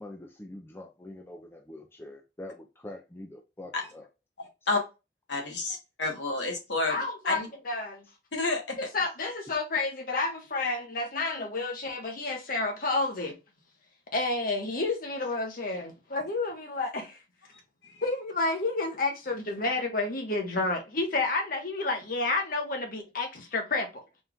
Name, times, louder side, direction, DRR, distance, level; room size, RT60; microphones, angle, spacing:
voice 1, 0.0-4.0, left 1 dB, 15° left, 0.5 m, -44 dB
voice 2, 4.4-4.8 5.3-7.5 8.3-8.8 17.8-18.0, left 3 dB, 75° left, 1.3 m, -30 dB
voice 3, 6.9-8.0 8.8-13.3 14.1-17.2 18.0-23.9, left 3 dB, 50° left, 1.1 m, -30 dB
4.2 x 2.4 x 3.5 m
head